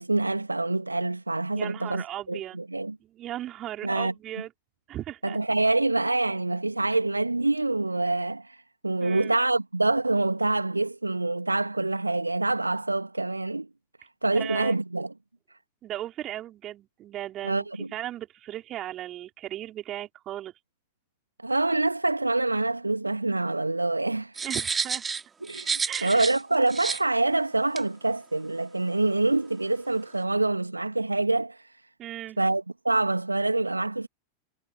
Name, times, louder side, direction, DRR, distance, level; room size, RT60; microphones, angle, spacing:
voice 1, 0.0-3.0 3.8-4.1 5.2-13.7 14.2-15.1 17.4-17.9 21.4-24.3 25.4-31.6 32.4-34.1, right 2 dB, 85° right, 2.4 m, -26 dB
voice 2, 1.5-2.6 3.0-4.5 4.9-5.4 9.0-9.4 14.3-14.8 15.8-20.5 24.4-25.1 25.9-26.3 32.0-32.4, right 13 dB, 30° right, 4.9 m, -37 dB
sound 1, 24.4-26.4 26.7-27.0 27.8-27.9, right 5 dB, 15° right, 4.0 m, -30 dB
figure-of-eight pair, 90°, 0 cm